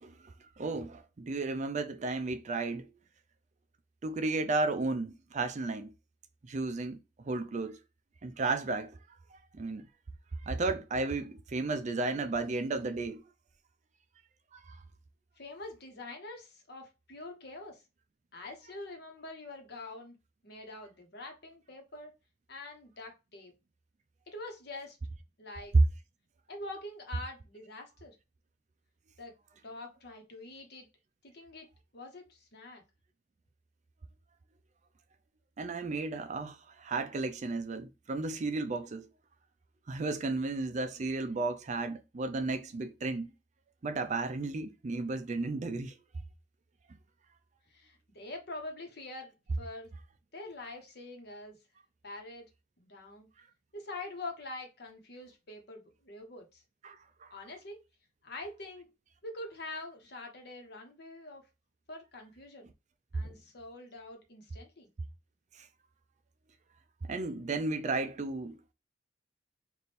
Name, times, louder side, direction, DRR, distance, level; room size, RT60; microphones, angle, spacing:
voice 1, 0.0-2.9 4.0-5.9 6.5-7.0 7.2-7.8 8.2-9.0 9.5-9.9 10.4-13.2 14.5-14.8 35.6-39.1 39.9-43.3 43.8-45.9 56.8-57.3 63.2-63.3 65.6-65.7 67.1-68.7, right 3 dB, 40° right, 0.4 m, -34 dB
voice 2, 15.4-17.8 18.3-20.2 20.4-22.1 22.5-23.5 24.3-25.0 25.4-25.8 26.5-28.2 29.2-29.3 29.6-30.9 31.2-31.7 31.9-32.8 47.7-49.9 50.3-51.6 52.0-52.5 52.8-53.3 53.7-56.6 57.3-57.8 58.2-58.9 59.2-61.4 61.9-62.7 63.1-64.9, left 2 dB, 60° left, 1.1 m, -45 dB
3.5 x 2.5 x 4.1 m
head